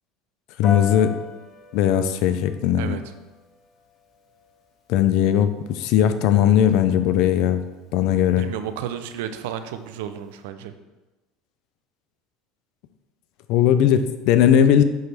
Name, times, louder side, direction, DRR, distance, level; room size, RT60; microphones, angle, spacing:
voice 1, 0.6-1.1 1.7-3.0 4.9-7.6 7.9-8.5 13.5-14.8, left 10 dB, 65° left, 10 dB, 0.6 m, -18 dB
Piano, 0.6-10.4, left 5 dB, 50° left, 1.5 m, -41 dB
voice 2, 2.8-3.1 8.4-10.7, right 9 dB, 85° right, 9 dB, 0.6 m, -32 dB
8.2 x 3.3 x 6.0 m, 1.1 s
supercardioid pair, 110°, 0 cm